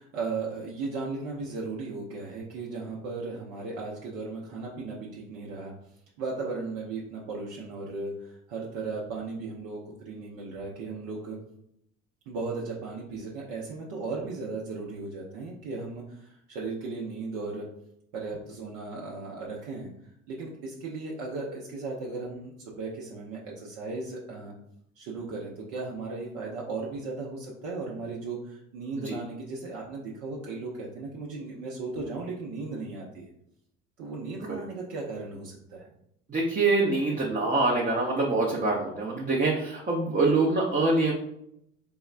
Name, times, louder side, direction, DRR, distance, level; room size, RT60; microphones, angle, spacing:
voice 1, 0.0-5.7 6.2-11.4 12.3-17.6 18.1-19.9 20.3-24.5 25.0-33.3 34.0-35.9, right 3 dB, 60° right, -3 dB, 0.8 m, -36 dB
voice 2, 36.3-41.1, right 3 dB, 25° right, -2 dB, 0.7 m, -25 dB
4.5 x 2.1 x 2.4 m, 0.76 s
hypercardioid pair, 70°, 36 cm